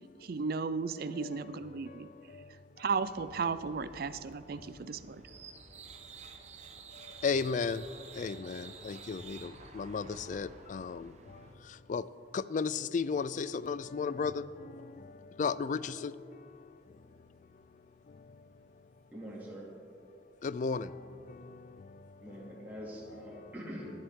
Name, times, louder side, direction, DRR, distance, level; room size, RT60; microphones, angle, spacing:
voice 1, 0.2-2.1 2.8-5.2, right 5 dB, 60° right, 14 dB, 0.5 m, -35 dB
sound 1, 2.9-11.5, right 5 dB, 40° right, 1.0 m, -51 dB
voice 2, 7.2-7.8 8.2-9.5 9.8-11.0 11.9-12.0 12.3-14.4 15.4-16.1 20.4-20.9, left 5 dB, 45° left, 17 dB, 0.3 m, -33 dB
voice 3, 19.1-19.7 22.2-23.9, equal, 10° right, -7 dB, 2.5 m, -44 dB
18.0 x 11.5 x 3.7 m, 2.5 s
head